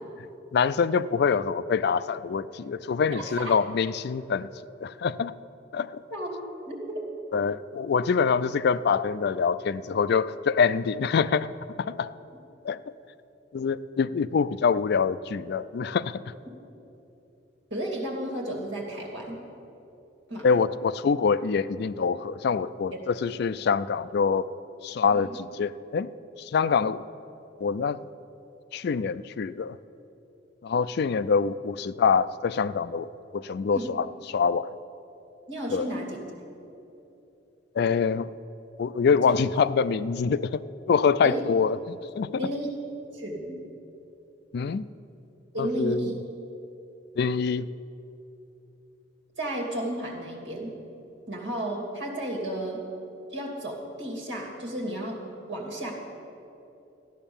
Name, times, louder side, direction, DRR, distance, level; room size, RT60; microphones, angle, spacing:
voice 1, 0.5-4.5 4.8-5.3 5.7-6.0 7.3-11.5 11.8-12.1 12.6-12.8 13.5-16.3 20.4-24.5 24.8-26.1 26.4-27.0 27.6-28.0 28.7-29.8 30.6-34.7 35.7-35.9 37.7-38.3 38.8-42.3 44.5-44.9 45.6-46.1 47.2-47.7, left 5 dB, 60° left, 16 dB, 0.4 m, -25 dB
voice 2, 3.1-3.5 6.1-6.8 17.7-19.4 20.3-20.5 25.1-25.4 33.7-33.9 35.5-36.2 41.2-41.4 42.4-42.7 43.1-43.6 45.5-46.2 49.4-50.7 51.3-52.8 53.3-55.2 55.5-55.9, right 1 dB, 65° right, 0 dB, 2.7 m, -33 dB
14.0 x 10.0 x 7.1 m, 2.9 s
head